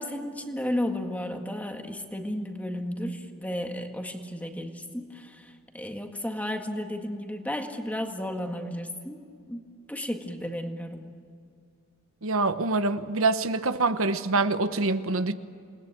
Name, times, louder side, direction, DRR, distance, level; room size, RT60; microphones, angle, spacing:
voice 1, 0.0-11.1, left 1 dB, 5° left, 1.9 m, -33 dB
voice 2, 12.2-15.3, right 3 dB, 75° right, 1.1 m, -25 dB
28.0 x 20.5 x 9.2 m
head